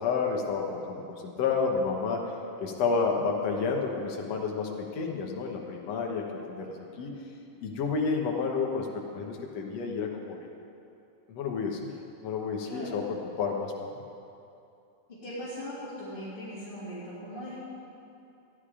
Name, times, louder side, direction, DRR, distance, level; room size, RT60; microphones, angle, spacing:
voice 1, 0.0-2.3 2.6-7.1 7.6-10.4 11.3-11.9 12.2-13.7, left 5 dB, 60° left, 0 dB, 2.1 m, -30 dB
voice 2, 12.6-13.1 15.2-17.6, equal, 15° left, -13 dB, 2.7 m, -39 dB
14.5 x 10.5 x 5.0 m, 2.7 s
omnidirectional pair, 3.9 m